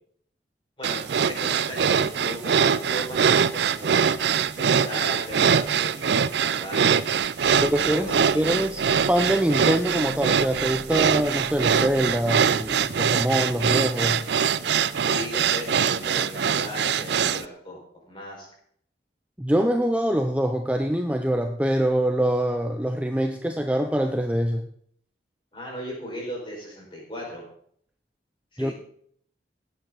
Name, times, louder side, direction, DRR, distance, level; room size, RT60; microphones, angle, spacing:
voice 1, 0.8-4.1 4.6-7.0 7.5-8.6 15.1-17.8 18.1-18.5 25.5-27.4 28.5-28.7, equal, 25° left, -2 dB, 5.0 m, -37 dB
sound 1, 0.8-17.4, right 7 dB, 70° right, 0.5 m, -23 dB
sound 2, 7.4-17.4, left 1 dB, 65° left, 5.9 m, -49 dB
voice 2, 7.6-14.2 19.4-24.6 28.6-28.7, right 1 dB, 5° right, 5 dB, 0.6 m, -24 dB
17.5 x 9.0 x 3.9 m, 0.65 s
head